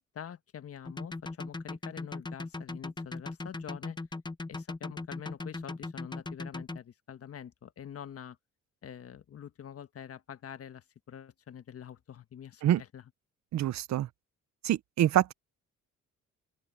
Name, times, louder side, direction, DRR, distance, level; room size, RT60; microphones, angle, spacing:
voice 1, 0.0-4.0 4.5-8.4 8.8-13.0, left 9 dB, 50° left, 1.4 m, -46 dB
sound 1, 0.9-6.8, left 3 dB, 15° left, 1.0 m, -38 dB
voice 2, 13.5-14.1 14.6-15.3, right 12 dB, 65° right, 0.8 m, -26 dB
open air
cardioid pair, 90°, 30 cm